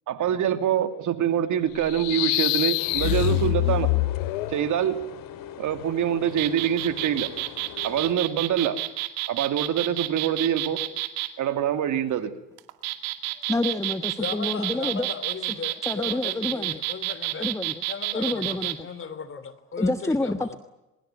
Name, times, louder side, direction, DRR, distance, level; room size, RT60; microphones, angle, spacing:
voice 1, 0.1-3.9 4.5-5.0 5.6-7.3 7.8-8.8 9.3-10.8 11.4-12.3, right 9 dB, 50° right, 2.8 m, -25 dB
sound 1, 1.8-4.6, left 18 dB, 80° left, 1.5 m, -24 dB
sound 2, 2.8-8.1, left 10 dB, 60° left, 3.4 m, -41 dB
sound 3, 6.3-11.3 12.6-18.8, right 19 dB, 70° right, 2.6 m, -30 dB
voice 2, 13.5-15.1 15.8-16.8 17.4-17.8 18.1-18.9 19.8-20.6, left 2 dB, 10° left, 1.4 m, -28 dB
voice 3, 14.2-17.5 17.9-20.6, left 5 dB, 35° left, 3.2 m, -37 dB
24.0 x 22.5 x 9.2 m
supercardioid pair, 85°, 38 cm